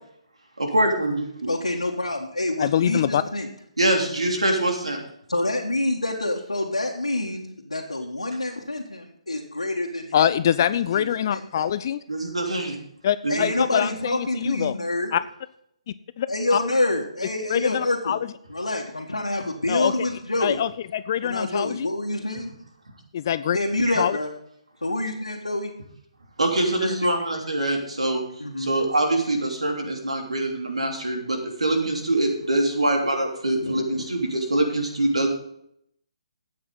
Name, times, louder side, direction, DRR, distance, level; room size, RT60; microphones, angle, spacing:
voice 1, 0.6-1.5 3.8-5.0 12.1-12.8 13.2-13.5 23.9-24.0 26.4-28.2 28.6-35.3, right 1 dB, 70° right, 1 dB, 3.1 m, -24 dB
voice 2, 1.5-3.5 5.3-10.3 10.7-11.8 13.3-15.1 16.3-18.2 18.5-20.6 21.2-22.5 23.5-24.3 24.8-25.7 26.6-27.2 28.4-28.7 33.6-34.0, left 2 dB, 80° left, -3 dB, 1.7 m, -27 dB
voice 3, 2.6-3.2 10.1-12.0 13.0-14.7 15.1-15.2 16.2-16.6 17.5-18.2 19.7-19.9 20.4-21.9 23.1-23.6 24.0-24.2, left 10 dB, 35° left, 15 dB, 0.4 m, -24 dB
12.5 x 8.6 x 4.1 m, 0.71 s
figure-of-eight pair, 135°, 3 cm